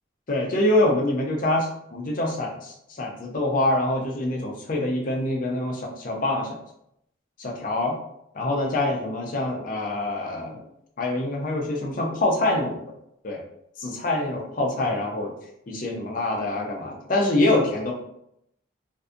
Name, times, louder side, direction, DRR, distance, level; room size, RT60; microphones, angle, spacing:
voice 1, 0.3-6.6 7.4-8.0 8.3-10.6 11.0-12.8 13.2-13.4 13.8-15.4 15.7-17.9, left 1 dB, 45° left, 0 dB, 0.5 m, -25 dB
2.5 x 2.3 x 2.4 m, 0.77 s
head